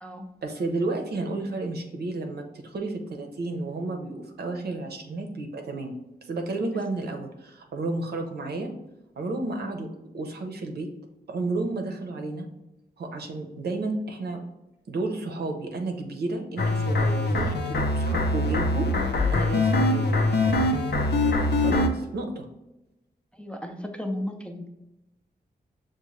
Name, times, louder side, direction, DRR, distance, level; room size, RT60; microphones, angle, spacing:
voice 1, 0.4-5.9 6.2-8.7 9.2-9.9 10.1-10.9 11.3-12.5 13.0-14.4 14.9-18.9 19.3-20.4 21.5-22.5, right 2 dB, 75° right, 4 dB, 0.7 m, -32 dB
sound 1, 16.6-21.9, left 2 dB, 85° left, 0.5 m, -23 dB
voice 2, 23.4-24.7, left 1 dB, 5° left, 3 dB, 0.4 m, -34 dB
6.3 x 2.2 x 3.1 m, 0.95 s
wide cardioid pair, 115°, 17 cm